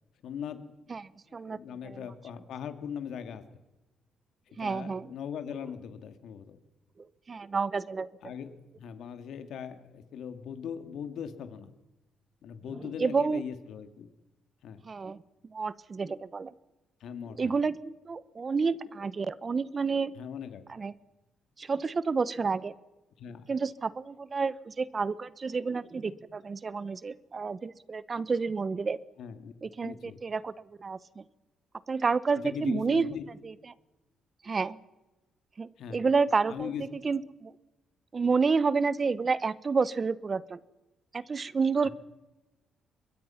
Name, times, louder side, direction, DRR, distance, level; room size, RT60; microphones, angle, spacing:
voice 1, 0.2-0.9 1.4-3.4 4.6-6.6 8.2-11.7 12.4-14.1 14.6-14.8 17.0-17.5 20.2-20.7 23.2-23.5 29.2-29.5 29.8-30.2 32.4-33.2 35.8-36.0 36.5-36.8, left 8 dB, 75° left, 9 dB, 2.4 m, -40 dB
voice 2, 0.9-1.6 1.8-2.0 4.6-5.1 7.0-8.1 12.8-13.4 14.8-15.2 15.5-16.5 17.4-20.1 20.7-20.9 21.6-22.7 23.5-29.0 29.6-31.2 31.9-33.1 33.4-33.5 34.4-34.8 35.6-37.5 38.1-40.6 41.1-41.9, right 4 dB, 35° right, 17 dB, 1.1 m, -30 dB
25.5 x 22.0 x 5.9 m, 1.1 s
cardioid pair, 90°, 0 cm